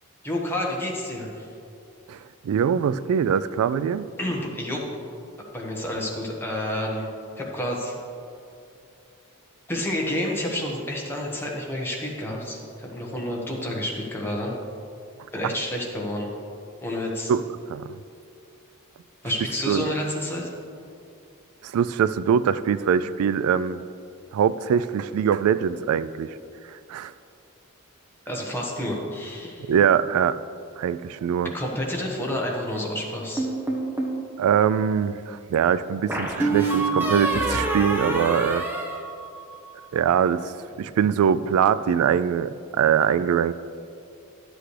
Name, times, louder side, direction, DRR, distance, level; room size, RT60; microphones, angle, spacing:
voice 1, 0.2-1.4 4.2-4.8 5.5-7.1 7.4-7.9 9.7-14.5 15.3-16.3 16.8-17.3 19.2-20.5 28.3-29.7 31.5-33.5, left 1 dB, 10° left, -2 dB, 1.3 m, -29 dB
voice 2, 2.1-4.1 15.4-15.5 17.3-17.4 17.7-17.9 19.7-19.9 21.6-23.8 24.3-26.3 26.9-27.1 29.7-30.4 30.8-31.5 34.4-38.6 39.9-40.5 40.8-43.5, right 8 dB, 90° right, 17 dB, 0.3 m, -22 dB
sound 1, 33.4-34.2 36.1-39.7, right 2 dB, 10° right, 1.1 m, -26 dB
11.5 x 8.0 x 3.3 m, 2.5 s
head